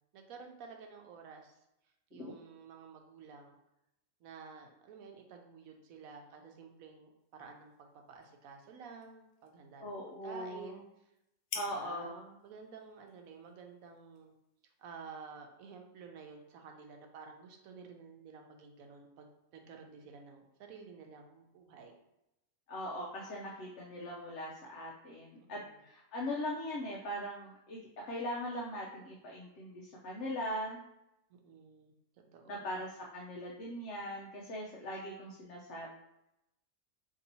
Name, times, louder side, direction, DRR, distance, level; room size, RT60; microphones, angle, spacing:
voice 1, 0.1-1.5 2.1-3.6 4.2-10.0 10.2-10.9 11.6-12.1 12.4-14.3 14.8-21.9 25.4-25.8 31.3-32.7, right 5 dB, 90° right, 3 dB, 1.1 m, -52 dB
sound 1, 7.2-14.9, left 5 dB, 90° left, 1.1 m, -52 dB
voice 2, 9.8-10.8 11.5-12.4 22.7-27.8 28.0-30.8 32.5-35.9, equal, 65° left, -2 dB, 0.8 m, -40 dB
2.9 x 2.7 x 4.1 m, 0.87 s
omnidirectional pair, 1.4 m